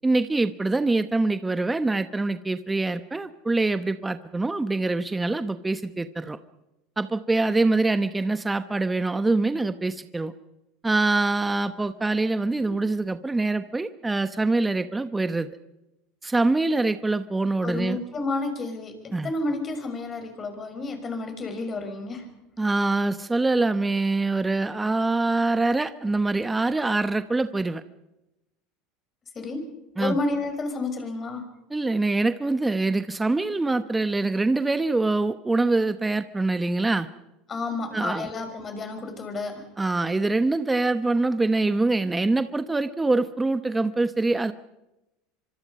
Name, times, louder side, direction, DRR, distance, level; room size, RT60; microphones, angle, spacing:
voice 1, 0.0-6.4 7.0-10.3 10.8-15.5 16.2-18.0 19.1-19.3 22.6-27.8 30.0-30.2 31.7-37.1 37.9-38.3 39.8-44.5, right 2 dB, 15° right, 11 dB, 1.0 m, -24 dB
voice 2, 17.6-22.3 29.3-29.7 30.0-31.5 37.5-39.6, left 3 dB, 30° left, 6 dB, 6.1 m, -31 dB
25.0 x 25.0 x 5.5 m, 0.95 s
hypercardioid pair, 90°, 0 cm